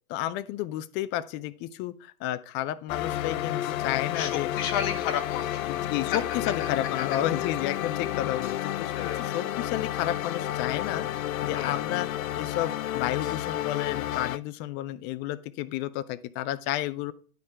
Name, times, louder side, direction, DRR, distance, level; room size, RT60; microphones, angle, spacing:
voice 1, 0.1-4.5 5.7-11.1 11.4-12.1 12.4-17.1, left 13 dB, 25° left, 14 dB, 0.5 m, -31 dB
sound 1, 2.9-14.4, left 12 dB, 65° left, 0.6 m, -31 dB
voice 2, 4.1-7.2 8.9-9.4 11.5-11.8, left 8 dB, 45° left, 2 dB, 1.1 m, -33 dB
10.5 x 4.3 x 4.5 m, 0.43 s
figure-of-eight pair, 100°, 44 cm